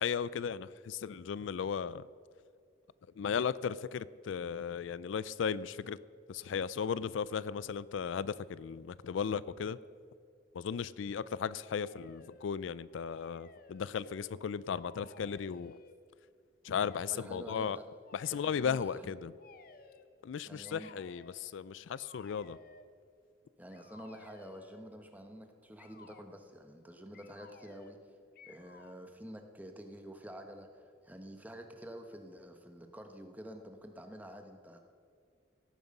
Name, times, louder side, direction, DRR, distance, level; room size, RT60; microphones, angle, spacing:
voice 1, 0.0-2.1 3.2-6.0 6.3-9.8 10.5-15.8 16.6-17.8 18.1-19.3 20.2-22.6, left 7 dB, 85° left, 19 dB, 0.4 m, -36 dB
sound 1, 11.6-12.5 12.9-14.4 14.7-16.0 16.7-17.2 18.0-18.7 19.4-20.1 20.6-21.4 21.9-22.9 23.7-24.9 25.8-26.3 27.1-28.0 28.4-29.0, left 4 dB, 50° left, 0.8 m, -57 dB
voice 2, 16.7-17.9 18.3-19.1 20.4-20.9 23.6-28.0 28.5-34.8, equal, 10° right, 5 dB, 1.0 m, -49 dB
17.0 x 9.3 x 5.3 m, 2.3 s
head